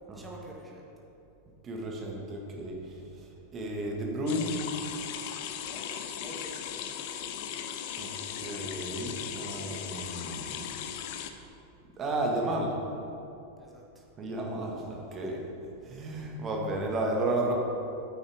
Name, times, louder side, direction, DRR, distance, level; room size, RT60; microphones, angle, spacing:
voice 1, 0.1-1.0 5.6-6.9 13.6-14.1, right 1 dB, 10° right, -2 dB, 1.4 m, -48 dB
voice 2, 1.6-4.6 8.0-10.7 12.0-12.7 14.2-15.4 15.8-17.5, right 1 dB, 25° right, 0 dB, 1.6 m, -33 dB
sound 1, 4.3-11.3, left 9 dB, 50° left, 0.6 m, -38 dB
9.0 x 8.6 x 3.5 m, 2.7 s
figure-of-eight pair, 90°, 0 cm